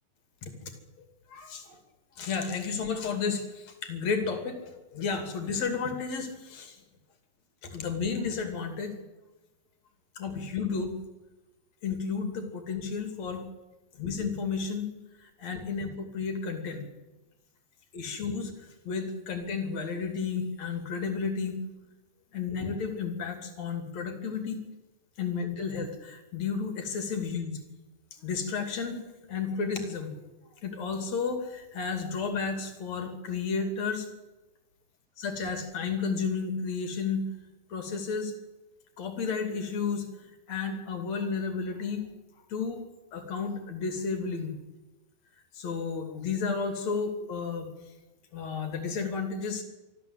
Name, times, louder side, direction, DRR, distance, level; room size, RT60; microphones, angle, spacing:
voice 1, 1.3-1.8 2.2-6.8 7.6-8.9 10.2-11.0 11.8-13.4 14.0-14.9 15.2-16.8 17.9-18.5 18.9-21.6 22.3-24.6 25.2-27.5 28.2-30.2 30.6-34.1 35.2-37.3 37.7-38.3 39.0-40.1 40.5-42.1 42.5-42.8 43.1-44.5 45.5-47.7 48.3-49.6, left 5 dB, 45° left, 6 dB, 3.5 m, -32 dB
25.5 x 13.5 x 8.1 m, 1.1 s
omnidirectional pair, 4.9 m